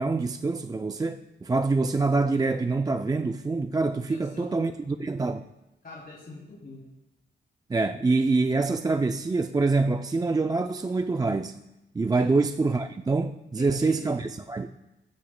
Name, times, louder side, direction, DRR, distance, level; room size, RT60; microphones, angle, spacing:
voice 1, 0.0-5.4 7.7-11.6 11.9-14.7, right 3 dB, 20° right, 0.3 m, -25 dB
voice 2, 4.1-4.7 5.8-6.9 12.2-12.3 13.6-14.2, left 3 dB, 50° left, 2.9 m, -44 dB
15.0 x 10.5 x 2.2 m
wide cardioid pair, 100°, 20 cm